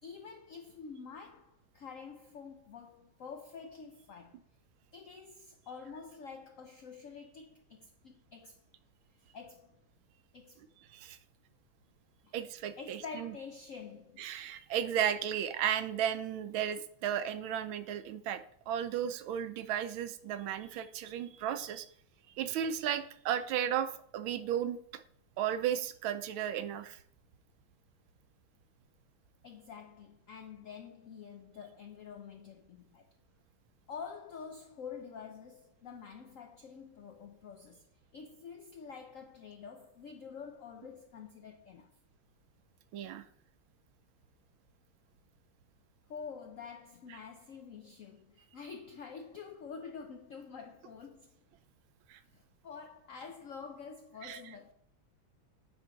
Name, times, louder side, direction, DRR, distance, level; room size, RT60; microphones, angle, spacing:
voice 1, 0.0-4.4 4.9-8.6 9.3-9.8 10.3-10.7 12.2-12.3 12.8-14.3 29.4-33.1 33.9-37.9 38.1-42.0 46.1-51.4 52.2-54.7, left 6 dB, 80° left, 0.7 m, -48 dB
voice 2, 12.3-13.3 14.2-18.4 18.7-21.9 22.4-24.8 25.4-27.0 42.9-43.2 52.1-52.2 54.2-54.4, right 9 dB, 90° right, 1.5 m, -34 dB
9.2 x 4.4 x 3.9 m
omnidirectional pair, 2.1 m